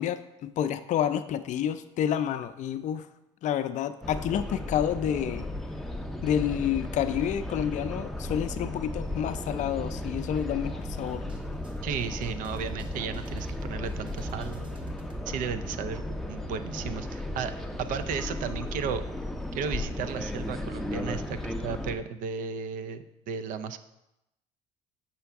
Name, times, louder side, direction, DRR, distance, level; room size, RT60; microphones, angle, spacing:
voice 1, 0.0-3.1 3.4-5.5 6.2-11.2, left 9 dB, 55° left, 12 dB, 0.4 m, -29 dB
sound 1, 4.0-22.0, left 1 dB, ahead, 0.5 m, -35 dB
sound 2, 9.7-15.3, right 2 dB, 30° right, 1.2 m, -45 dB
voice 2, 11.8-14.7 15.3-19.1 19.5-23.8, right 7 dB, 65° right, 10 dB, 0.5 m, -34 dB
6.9 x 4.5 x 3.5 m, 0.89 s
supercardioid pair, 80°, 15 cm